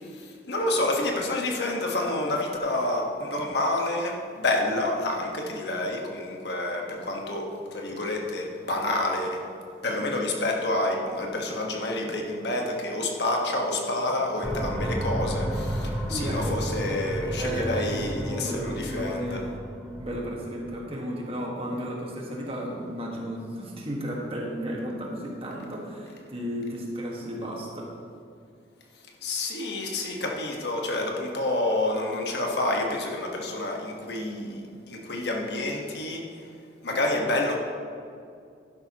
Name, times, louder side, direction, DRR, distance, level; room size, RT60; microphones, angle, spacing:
voice 1, 0.1-9.4 9.8-19.4 29.2-36.2 36.8-37.5, left 2 dB, 65° left, 0 dB, 1.4 m, -28 dB
sound 1, 14.4-20.7, equal, 5° left, 1.0 m, -32 dB
voice 2, 16.1-16.9 17.3-19.6 20.0-27.9, equal, 30° right, -2 dB, 1.6 m, -33 dB
11.5 x 10.5 x 3.0 m, 2.4 s
head